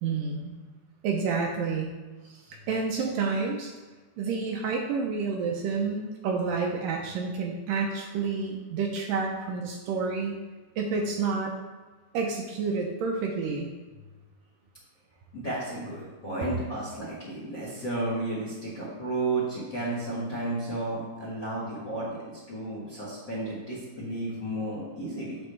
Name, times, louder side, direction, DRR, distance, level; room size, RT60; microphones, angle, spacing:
voice 1, 0.0-0.6 1.0-2.0 2.3-3.7 4.2-10.4 10.8-11.5 12.1-13.7, right 4 dB, 75° right, 1 dB, 2.1 m, -29 dB
voice 2, 15.3-25.4, right 2 dB, 50° left, -5 dB, 1.3 m, -33 dB
9.1 x 6.7 x 3.3 m, 1.3 s
omnidirectional pair, 4.5 m